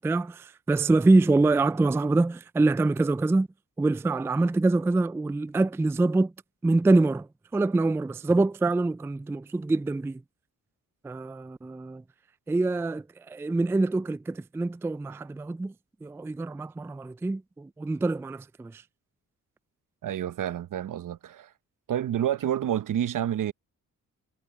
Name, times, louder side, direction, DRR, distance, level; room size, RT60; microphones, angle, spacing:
voice 1, 0.0-3.5 3.8-6.3 6.6-7.3 7.5-10.2 11.0-12.0 12.5-15.7 16.0-18.8, right 2 dB, 10° right, 0.3 m, -25 dB
voice 2, 20.0-21.5 21.9-23.5, right 10 dB, 70° right, 1.0 m, -29 dB
cardioid pair, 65°, 33 cm